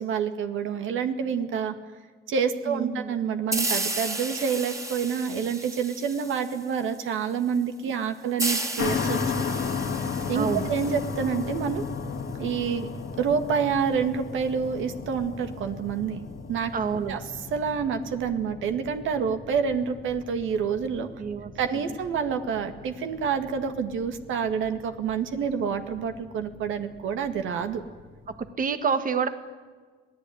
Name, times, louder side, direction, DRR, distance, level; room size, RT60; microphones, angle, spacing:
voice 1, 0.0-1.7 2.3-9.4 10.3-11.8 12.4-12.9 13.2-16.2 16.5-16.7 17.0-17.2 17.5-21.1 21.6-27.8, right 6 dB, 80° right, 7 dB, 2.0 m, -28 dB
voice 2, 2.7-3.2 10.3-10.7 16.7-17.2 21.2-21.5 28.4-29.3, right 6 dB, 45° right, 9 dB, 1.6 m, -28 dB
sound 1, 3.5-6.9 8.4-11.9, right 2 dB, 15° right, 2.5 m, -33 dB
sound 2, 8.8-28.5, left 5 dB, 80° left, 2.5 m, -36 dB
26.0 x 17.5 x 9.5 m, 1.5 s
cardioid pair, 90°, 20 cm